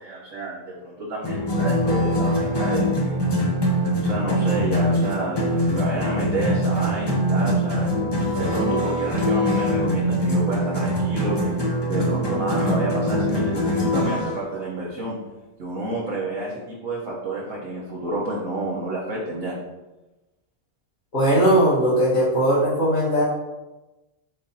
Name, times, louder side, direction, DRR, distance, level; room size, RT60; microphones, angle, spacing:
voice 1, 0.0-3.3 4.0-11.5 11.9-15.2 15.6-19.5, right 2 dB, 70° right, -4 dB, 1.3 m, -29 dB
sound 1, 1.2-14.4, equal, 40° left, 0.3 m, -23 dB
voice 2, 21.1-23.2, right 1 dB, 70° left, -8 dB, 1.6 m, -19 dB
4.7 x 2.6 x 4.0 m, 1.1 s
omnidirectional pair, 1.4 m